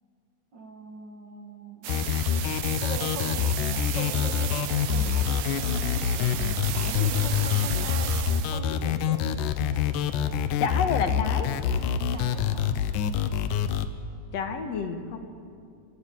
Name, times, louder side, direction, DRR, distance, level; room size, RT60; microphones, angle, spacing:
voice 1, 0.5-2.1 2.8-9.3 12.1-12.8, right 2 dB, 50° right, 4 dB, 1.5 m, -41 dB
sound 1, 1.8-8.6, right 14 dB, 85° right, 2.4 m, -34 dB
sound 2, 1.9-13.9, left 8 dB, 85° left, 2.5 m, -26 dB
sound 3, 1.9-13.8, left 1 dB, 15° right, 2.1 m, -44 dB
voice 2, 10.6-11.5 14.3-15.2, left 6 dB, 60° left, 7 dB, 2.4 m, -28 dB
25.0 x 17.5 x 9.2 m, 2.4 s
omnidirectional pair, 3.6 m